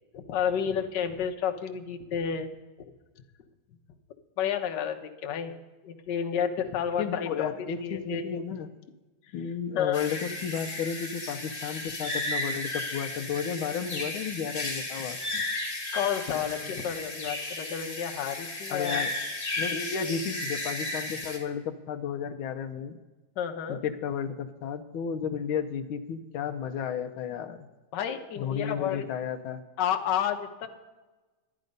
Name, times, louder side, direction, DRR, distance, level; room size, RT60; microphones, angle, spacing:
voice 1, 0.1-2.5 4.4-5.6 5.8-8.2 9.8-10.0 15.9-19.0 23.4-23.8 27.9-29.1 29.8-30.7, left 8 dB, 65° left, 5 dB, 1.5 m, -30 dB
voice 2, 7.0-8.7 9.3-15.4 16.4-16.8 18.7-19.2 19.6-23.0 23.7-27.7 28.4-29.6, left 7 dB, 90° left, 5 dB, 1.5 m, -33 dB
sound 1, 9.9-21.4, left 2 dB, 25° left, 1.9 m, -34 dB
12.0 x 9.9 x 5.3 m, 1.2 s
omnidirectional pair, 2.2 m